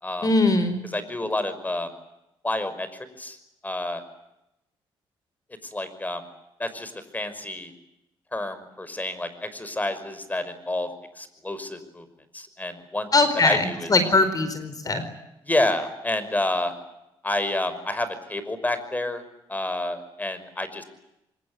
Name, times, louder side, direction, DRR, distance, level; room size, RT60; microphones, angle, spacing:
voice 1, 0.2-0.8 13.1-15.0, left 3 dB, 40° left, 10 dB, 4.6 m, -21 dB
voice 2, 0.9-1.9 2.4-2.9 3.2-3.4 3.6-4.0 5.7-6.2 6.6-7.7 8.3-10.9 11.2-12.1 12.3-13.1 13.4-13.9 15.4-16.7 17.2-19.2 19.5-20.8, left 1 dB, 15° left, 12 dB, 5.7 m, -29 dB
25.0 x 22.0 x 9.7 m, 0.88 s
cardioid pair, 75°, 10 cm